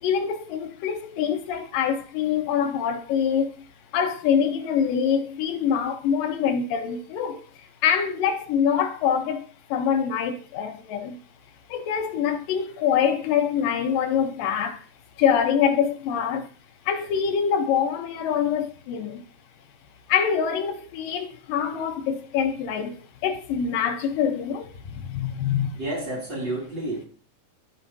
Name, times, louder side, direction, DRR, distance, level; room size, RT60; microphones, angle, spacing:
voice 1, 0.0-3.6 3.9-11.2 11.7-14.9 15.2-16.5 16.9-19.2 20.1-25.8, left 8 dB, 85° left, 2.6 m, -25 dB
voice 2, 25.8-27.1, right 2 dB, 35° right, 3.1 m, -30 dB
15.0 x 5.6 x 2.7 m
omnidirectional pair, 3.8 m